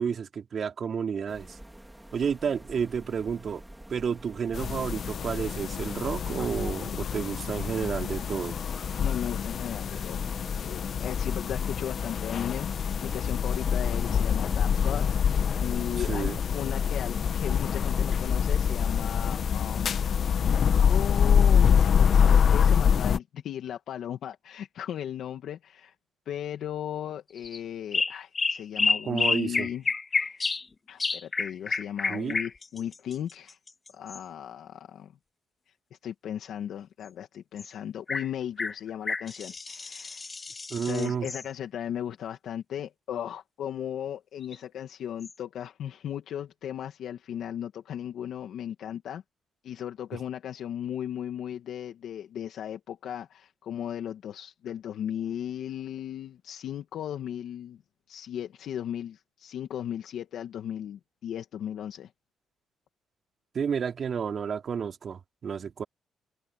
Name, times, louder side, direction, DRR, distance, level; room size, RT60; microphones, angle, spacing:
voice 1, 0.0-1.6 2.1-3.6 3.9-8.6 15.9-16.4 29.0-29.7 32.1-32.4 40.7-41.3 63.5-65.8, right 7 dB, 50° right, 3.4 m, -31 dB
sound 1, 1.3-19.8, right 1 dB, 5° right, 2.8 m, -48 dB
sound 2, 4.5-23.2, left 7 dB, 55° left, 1.4 m, -25 dB
voice 2, 9.0-10.3 10.6-20.0 20.4-25.9 26.3-29.8 30.2-30.4 30.9-33.6 33.9-35.1 35.9-40.3 40.9-49.2 49.6-57.8 58.1-62.1, left 10 dB, 70° left, 2.1 m, -36 dB
sound 3, 27.4-27.6 27.9-30.7 31.0-34.2 37.6-37.7 38.1-38.3 38.6-41.5 44.4-44.6 45.2-45.3, left 4 dB, 30° left, 2.4 m, -30 dB
cardioid pair, 90°, 0 cm